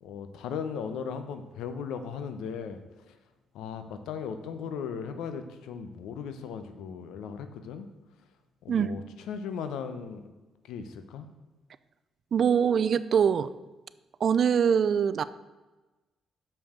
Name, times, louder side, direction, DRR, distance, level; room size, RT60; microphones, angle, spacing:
voice 1, 0.0-2.8 3.1-3.2 3.5-7.9 8.6-10.3 10.7-11.3, left 6 dB, 90° left, 9 dB, 0.8 m, -37 dB
voice 2, 12.3-13.5 14.2-15.2, right 7 dB, 55° right, 15 dB, 0.4 m, -23 dB
6.8 x 5.8 x 6.4 m, 1.2 s
cardioid pair, 90°, 0 cm